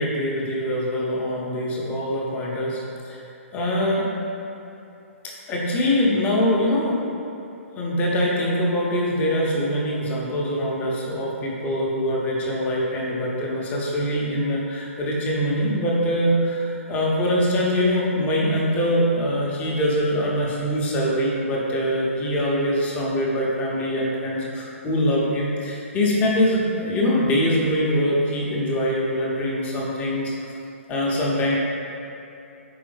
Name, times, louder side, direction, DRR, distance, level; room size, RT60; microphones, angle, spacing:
voice 1, 0.0-2.8 3.0-3.2 3.5-4.1 5.2-7.0 7.7-30.3 30.9-31.6, equal, 20° left, -4 dB, 0.7 m, -23 dB
4.6 x 3.4 x 3.4 m, 2.8 s
figure-of-eight pair, 120°, 7 cm